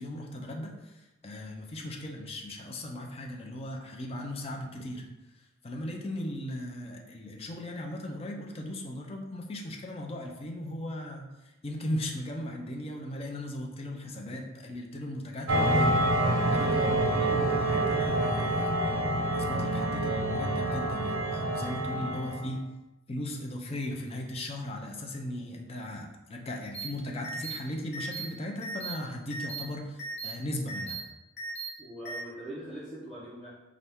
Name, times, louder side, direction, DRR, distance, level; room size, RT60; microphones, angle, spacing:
voice 1, 0.0-5.1 5.6-16.0 16.5-18.8 19.3-22.7 23.1-31.0, left 1 dB, 30° left, 1 dB, 0.5 m, -37 dB
sound 1, 15.5-22.5, right 1 dB, 75° right, 0.6 m, -27 dB
voice 2, 16.8-17.1 31.8-33.5, equal, ahead, -12 dB, 0.8 m, -42 dB
sound 2, 26.7-26.9 27.2-27.6 27.9-28.3 28.6-28.9 29.3-29.6 30.0-30.3 30.7-31.0 31.4-31.7 32.1-32.2, right 3 dB, 60° left, 1.1 m, -37 dB
4.1 x 2.5 x 3.5 m, 0.99 s
head